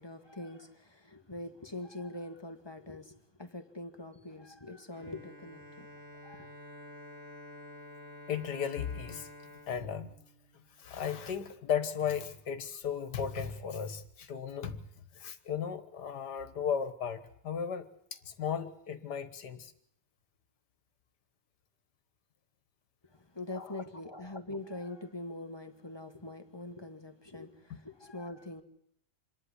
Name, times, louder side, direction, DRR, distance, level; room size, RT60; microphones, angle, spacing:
voice 1, 0.0-5.9 6.2-6.5 23.1-28.6, left 2 dB, 15° left, 1.3 m, -43 dB
Bowed string instrument, 4.9-10.9, left 1 dB, 30° right, 2.8 m, -50 dB
voice 2, 8.3-9.3 9.7-10.1 10.8-14.8 15.1-17.9 18.1-19.7 23.5-23.8, left 7 dB, 65° left, 1.9 m, -35 dB
26.5 x 11.0 x 9.8 m
omnidirectional pair, 2.0 m